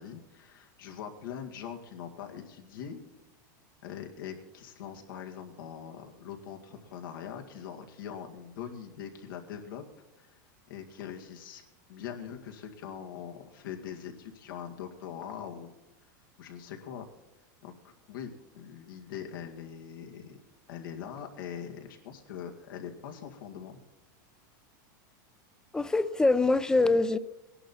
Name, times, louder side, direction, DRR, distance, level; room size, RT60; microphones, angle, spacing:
voice 1, 0.0-3.0 3.8-9.8 10.2-10.4 10.7-11.6 11.9-15.7 16.4-17.1 17.6-20.4 20.7-23.8, left 8 dB, 85° left, 3 dB, 2.1 m, -42 dB
voice 2, 25.7-27.2, left 3 dB, 5° left, 14 dB, 0.5 m, -24 dB
18.0 x 11.0 x 4.3 m, 0.98 s
supercardioid pair, 145°, 11 cm